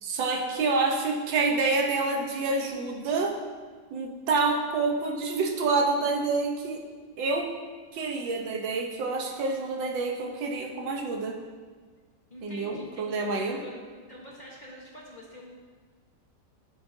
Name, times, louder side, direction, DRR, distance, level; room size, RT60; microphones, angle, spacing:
voice 1, 0.0-3.4 3.9-6.8 7.2-7.5 7.9-11.4 12.4-13.6, right 3 dB, 90° right, 2 dB, 1.7 m, -27 dB
voice 2, 12.3-15.5, left 1 dB, 30° left, -4 dB, 1.0 m, -46 dB
10.5 x 7.2 x 2.7 m, 1.5 s
omnidirectional pair, 2.0 m